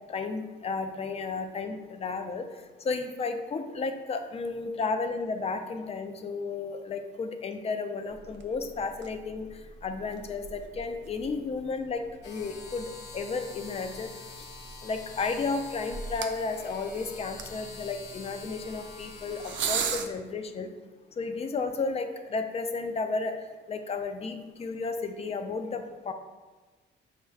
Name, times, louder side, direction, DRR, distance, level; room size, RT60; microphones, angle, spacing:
voice 1, 0.1-2.4 2.8-9.5 9.8-12.9 13.1-14.1 14.8-20.7 21.2-23.4 23.7-26.1, left 4 dB, 30° left, 7 dB, 0.4 m, -33 dB
sound 1, 8.1-20.1, right 6 dB, 70° right, 0.4 m, -40 dB
sound 2, 12.2-19.8, left 4 dB, 60° left, 0.8 m, -46 dB
6.2 x 2.2 x 2.3 m, 1.3 s
cardioid pair, 90°, 20 cm